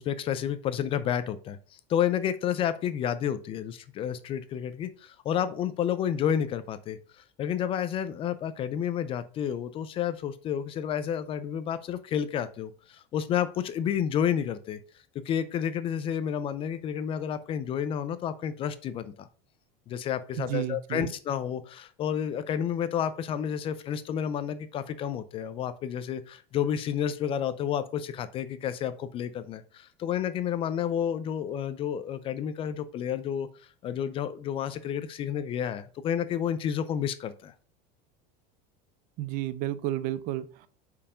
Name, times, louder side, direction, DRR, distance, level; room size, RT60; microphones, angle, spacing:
voice 1, 0.0-1.6 1.9-7.0 7.4-14.8 15.3-19.3 19.9-33.5 33.8-37.5, left 9 dB, 25° left, 0.4 m, -30 dB
voice 2, 20.4-21.1 39.2-40.7, right 14 dB, 40° right, 0.5 m, -32 dB
5.5 x 4.6 x 4.8 m
cardioid pair, 165°, 21 cm